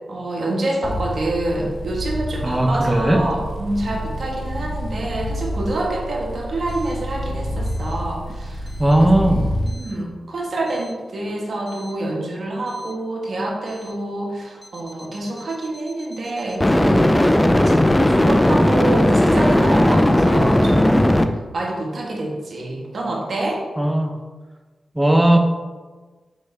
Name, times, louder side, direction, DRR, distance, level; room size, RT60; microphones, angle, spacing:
voice 1, 0.1-8.7 9.0-9.1 9.6-21.2 21.5-23.6, right 1 dB, 65° right, -1 dB, 1.5 m, -27 dB
sound 1, 0.8-9.7, equal, 75° left, 1.4 m, -28 dB
voice 2, 2.4-3.3 8.8-9.5 23.8-24.3 24.9-25.4, right 1 dB, 15° right, 4 dB, 0.9 m, -17 dB
sound 2, 11.7-11.9 16.6-21.2, left 1 dB, 15° left, 0.5 m, -16 dB
6.5 x 5.3 x 3.5 m, 1.3 s
cardioid pair, 50°, 0 cm